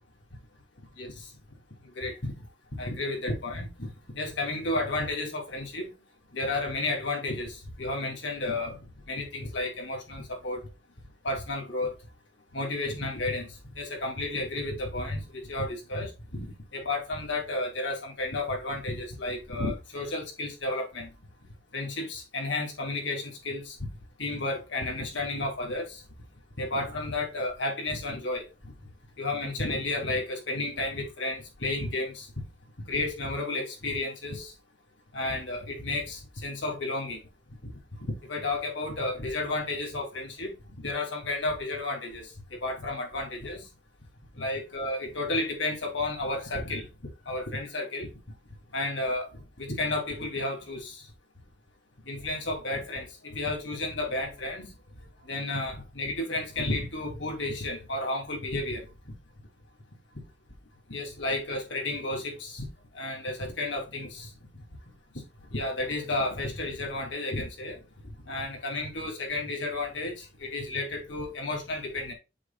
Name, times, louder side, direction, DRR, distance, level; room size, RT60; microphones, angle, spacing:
voice 1, 1.0-1.3 1.9-2.3 2.8-5.9 6.3-8.8 9.1-10.6 11.2-11.9 12.5-21.1 21.7-23.8 24.2-26.0 26.6-28.4 29.2-32.3 32.9-34.5 35.1-37.2 37.6-37.7 38.3-43.6 44.4-46.9 47.2-48.1 48.7-49.3 49.6-51.0 52.0-54.7 55.2-58.8 60.9-62.7 62.9-64.3 65.5-67.8 68.3-72.1, left 2 dB, 75° left, 3.2 m, -32 dB
7.6 x 6.7 x 2.5 m
head